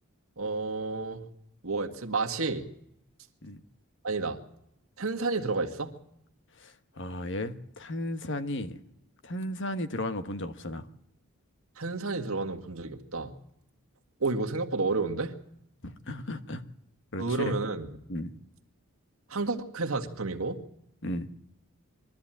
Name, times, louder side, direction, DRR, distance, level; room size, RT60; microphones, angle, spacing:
voice 1, 0.4-1.2 1.6-2.7 4.0-4.4 5.0-5.9 11.8-13.4 14.2-15.3 17.2-17.9 19.3-20.6, right 3 dB, 70° right, 3 dB, 1.8 m, -30 dB
voice 2, 6.6-8.8 9.2-10.9 15.8-16.6 17.1-17.5 18.1-18.3 21.0-21.3, left 1 dB, 55° left, 10 dB, 1.3 m, -35 dB
22.5 x 13.5 x 9.0 m, 0.78 s
head